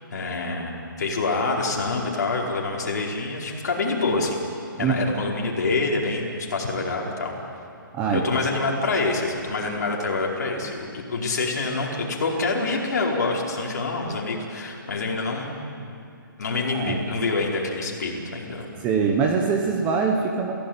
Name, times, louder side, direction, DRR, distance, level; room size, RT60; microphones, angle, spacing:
voice 1, 0.1-4.4 4.8-7.3 8.1-15.8 16.4-18.7, left 3 dB, 50° left, -2 dB, 4.9 m, -26 dB
voice 2, 7.9-8.5 16.7-17.0 18.8-20.5, right 5 dB, 10° right, 2 dB, 0.9 m, -23 dB
28.5 x 16.5 x 9.0 m, 2.5 s
hypercardioid pair, 175°, 12 cm